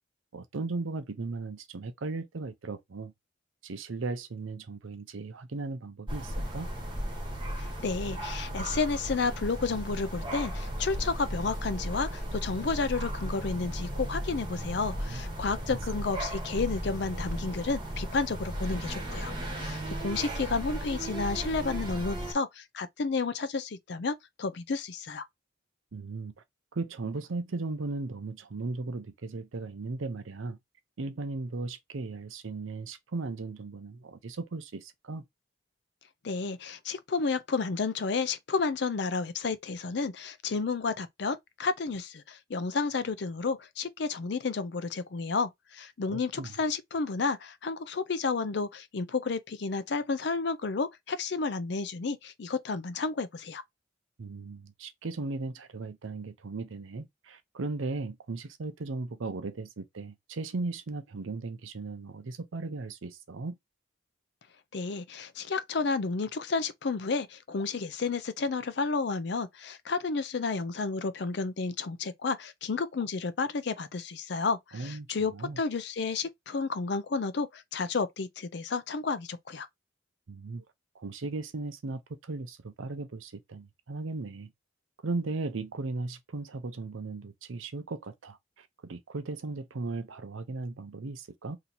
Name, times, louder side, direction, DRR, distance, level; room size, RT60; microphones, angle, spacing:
voice 1, 0.3-3.1 3.6-6.7 15.1-15.2 25.9-26.3 26.7-30.6 31.0-35.2 46.1-46.5 54.2-63.6 74.7-75.1 75.3-75.6 80.3-80.6 80.9-84.5 85.0-91.6, right 3 dB, 80° right, 0.6 m, -37 dB
sound 1, 6.1-22.3, equal, 25° right, 1.0 m, -35 dB
voice 2, 7.6-19.3 19.6-25.2 36.2-53.6 64.7-79.7, left 4 dB, 55° left, 0.5 m, -31 dB
2.8 x 2.8 x 3.9 m
head